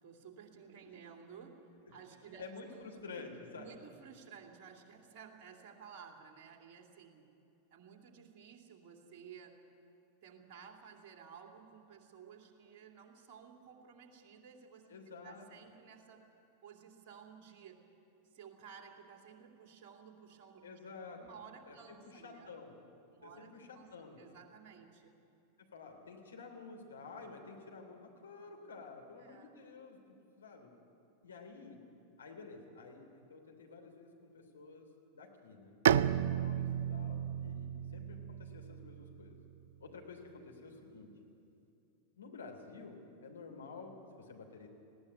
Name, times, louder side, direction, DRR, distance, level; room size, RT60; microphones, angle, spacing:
voice 1, 0.0-2.4 2.7-3.2 3.5-7.3 7.7-9.6 10.2-15.0 15.2-16.3 16.6-17.8 18.3-20.6 21.2-22.5 23.1-25.1 29.2-29.5, right 7 dB, 40° right, 3 dB, 2.7 m, -55 dB
voice 2, 2.4-3.7 14.9-15.5 20.6-21.2 21.7-22.8 23.2-24.2 25.7-30.0 30.4-30.7 31.2-31.8 32.2-34.9 35.1-35.8 36.1-39.4 39.8-41.1 42.1-44.7, left 4 dB, 70° left, 2 dB, 3.2 m, -51 dB
Bowed string instrument, 35.8-39.5, right 9 dB, 60° right, 0.4 m, -33 dB
19.5 x 16.0 x 9.7 m, 2.7 s
figure-of-eight pair, 90°, 0 cm